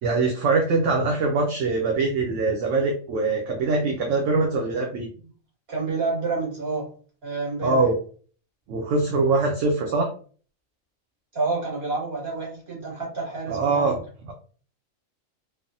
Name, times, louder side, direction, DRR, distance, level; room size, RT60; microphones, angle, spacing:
voice 1, 0.0-5.1 7.6-7.9 8.7-10.1 13.5-14.0, right 3 dB, 70° right, 1 dB, 0.9 m, -23 dB
voice 2, 5.7-6.9 7.2-7.9 11.3-14.0, right 3 dB, 50° right, -4 dB, 1.7 m, -28 dB
3.2 x 2.0 x 2.6 m, 0.41 s
omnidirectional pair, 1.4 m